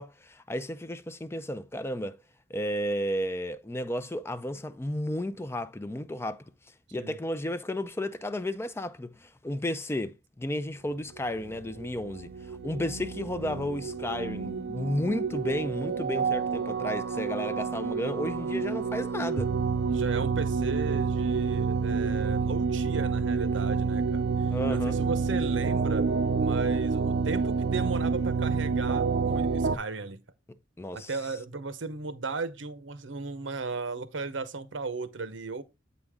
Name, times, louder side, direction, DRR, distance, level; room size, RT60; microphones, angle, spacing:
voice 1, 0.0-2.2 2.5-6.4 6.9-12.3 12.6-19.5 24.5-25.0 30.8-31.1, left 1 dB, 15° left, 0.4 m, -33 dB
sound 1, 11.4-29.8, right 5 dB, 60° right, 0.6 m, -28 dB
voice 2, 19.9-26.1 26.4-30.2 30.9-35.6, right 4 dB, 85° right, 0.8 m, -36 dB
8.0 x 5.1 x 3.5 m
head